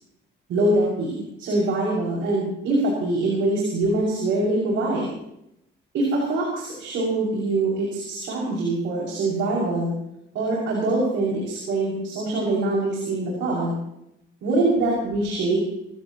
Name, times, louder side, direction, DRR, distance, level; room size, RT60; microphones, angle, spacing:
voice 1, 0.5-5.1 5.9-9.9 10.3-13.7 14.4-15.7, right 2 dB, 80° right, -3 dB, 6.5 m, -24 dB
25.5 x 16.5 x 3.1 m, 0.79 s
cardioid pair, 90°, 20 cm